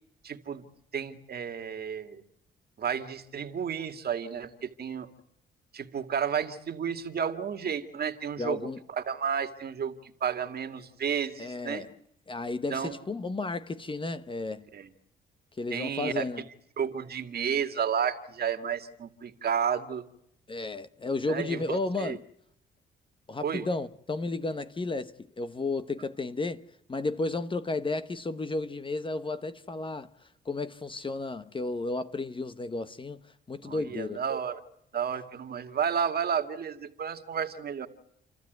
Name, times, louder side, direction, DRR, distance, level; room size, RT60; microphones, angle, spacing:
voice 1, 0.2-0.7 0.9-2.2 2.8-5.1 5.7-11.8 12.7-12.9 14.7-14.9 15.7-16.3 16.8-20.0 21.3-22.2 23.4-23.7 33.6-34.6 34.9-37.9, right 7 dB, 50° right, 2.2 m, -32 dB
voice 2, 8.4-8.8 11.4-11.9 12.3-14.6 15.6-16.4 20.5-22.3 23.3-33.2 33.5-34.2, left 3 dB, 25° left, 1.0 m, -33 dB
29.5 x 13.5 x 9.3 m
cardioid pair, 90°, 20 cm